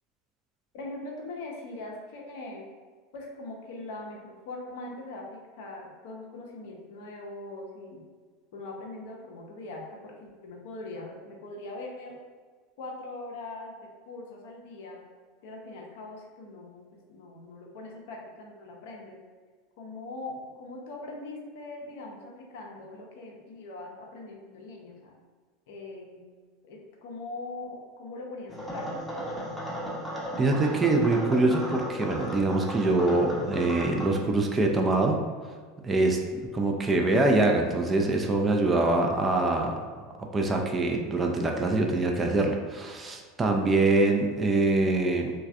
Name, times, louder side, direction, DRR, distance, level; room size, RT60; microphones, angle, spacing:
voice 1, 0.7-2.6 3.1-8.0 8.5-12.2 12.8-15.0 15.4-16.8 17.1-19.2 19.8-25.1 25.7-26.2 26.6-28.9, left 2 dB, 60° left, 0 dB, 0.5 m, -41 dB
sound 1, 28.5-34.1, equal, 5° left, 0.7 m, -35 dB
voice 2, 30.4-35.2 35.8-39.8 40.3-45.3, right 2 dB, 20° right, 2 dB, 0.3 m, -24 dB
3.1 x 2.2 x 2.4 m, 1.5 s
figure-of-eight pair, 80°, 0 cm